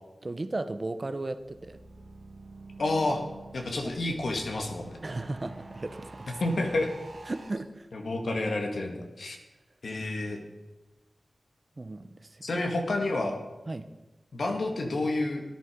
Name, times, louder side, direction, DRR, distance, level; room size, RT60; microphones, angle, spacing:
voice 1, 0.2-1.8 3.8-4.0 5.0-6.3 7.3-7.9 11.8-12.5 13.7-13.9, right 2 dB, 40° right, 10 dB, 1.0 m, -35 dB
sound 1, 1.3-7.5, right 3 dB, 75° right, 2.7 m, -47 dB
voice 2, 2.8-3.2 3.5-4.9 6.4-6.9 7.9-9.4 9.8-10.4 12.4-13.4 14.3-15.4, left 2 dB, 75° left, 2 dB, 2.2 m, -29 dB
13.0 x 11.0 x 5.3 m, 1.1 s
cardioid pair, 55°, 0 cm